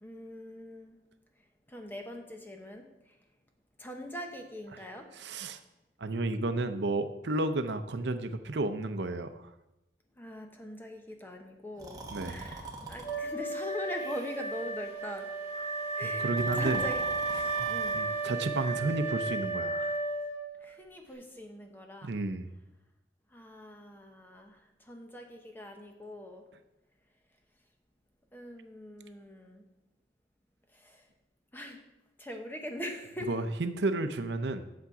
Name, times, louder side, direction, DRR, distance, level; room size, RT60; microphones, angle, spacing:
voice 1, 0.0-1.0 1.7-2.9 3.8-5.1 10.2-12.6 12.9-15.3 16.0-16.3 16.5-17.0 17.3-18.1 20.6-22.2 23.3-26.5 28.3-29.6 30.7-31.0 31.5-31.8 32.2-33.3, left 1 dB, 10° left, 4 dB, 0.9 m, -42 dB
voice 2, 5.1-5.6 6.0-9.5 12.1-12.5 16.0-16.8 17.4-19.9 22.0-22.5 33.2-34.7, right 2 dB, 70° right, 9 dB, 0.6 m, -32 dB
Breathing, 11.7-13.2 14.0-14.6 16.3-18.0, right 2 dB, 20° right, 1.1 m, -44 dB
Wind instrument woodwind instrument, 13.0-20.6, right 3 dB, 40° left, 2.6 m, -33 dB
8.6 x 6.8 x 4.8 m, 0.96 s
head